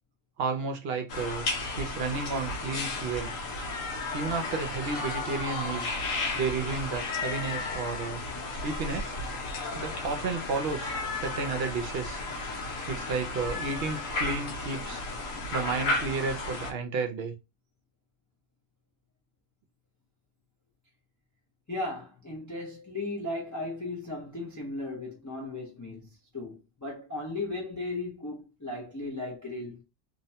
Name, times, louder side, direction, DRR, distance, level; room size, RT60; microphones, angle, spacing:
voice 1, 0.4-1.5 1.8-3.3 4.1-5.9 6.3-8.2 8.5-9.1 9.7-12.2 12.9-15.0 15.5-17.3, right 4 dB, 60° right, 0.7 m, -32 dB
sound 1, 1.1-16.7, left 2 dB, 85° left, 1.1 m, -33 dB
voice 2, 21.7-29.8, left 2 dB, 25° left, 0.4 m, -36 dB
2.8 x 2.1 x 2.7 m
omnidirectional pair, 1.3 m